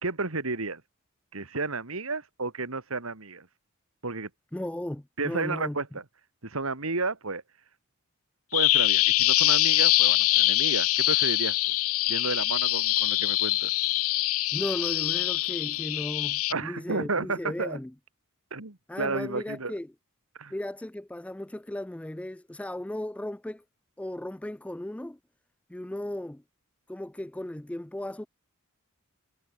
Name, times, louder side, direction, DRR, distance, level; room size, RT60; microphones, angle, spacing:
voice 1, 0.0-0.8 1.3-3.5 4.0-4.3 5.2-6.0 6.4-7.4 8.5-11.8 12.1-13.7 16.5-17.8 18.5-19.7 20.3-20.5, right 3 dB, 70° right, 2.3 m, -32 dB
voice 2, 4.5-5.8 14.5-17.9 18.9-19.9 20.5-23.6 24.0-25.2 25.7-26.4 26.9-28.3, left 1 dB, 5° left, 0.4 m, -36 dB
Bird vocalization bird call bird song, 8.5-16.5, left 17 dB, 70° left, 0.6 m, -24 dB
head